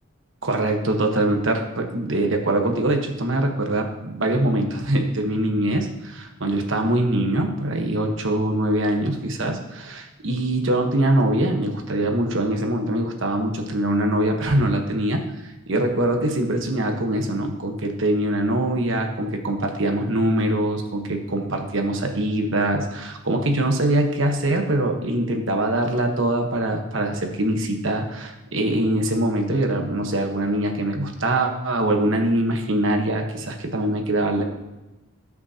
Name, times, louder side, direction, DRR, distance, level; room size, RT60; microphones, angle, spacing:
voice 1, 0.4-15.2 15.7-34.4, right 1 dB, 65° right, 4 dB, 1.2 m, -23 dB
18.0 x 6.1 x 2.9 m, 1.0 s
head